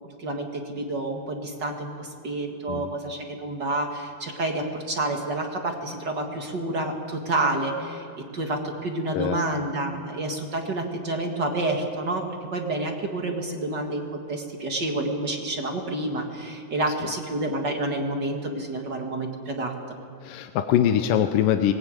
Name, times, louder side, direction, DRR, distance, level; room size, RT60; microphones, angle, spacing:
voice 1, 0.2-8.1 8.3-12.2 12.5-19.7, right 2 dB, 45° right, 2 dB, 1.6 m, -29 dB
voice 2, 20.2-21.7, left 10 dB, 75° left, 7 dB, 2.3 m, -23 dB
20.0 x 17.0 x 8.9 m, 2.5 s
omnidirectional pair, 4.2 m